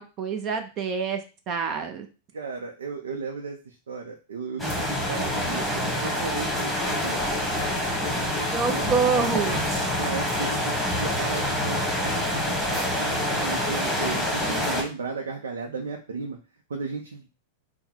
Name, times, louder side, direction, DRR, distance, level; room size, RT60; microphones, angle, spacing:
voice 1, 0.0-2.1 8.5-9.6, right 5 dB, 40° right, 6 dB, 0.7 m, -27 dB
voice 2, 2.3-16.4 16.7-17.3, right 4 dB, 85° right, 1 dB, 0.6 m, -35 dB
sound 1, 4.6-14.8, left 1 dB, 5° left, 1.4 m, -26 dB
3.6 x 2.2 x 4.4 m, 0.32 s
hypercardioid pair, 115°, 0 cm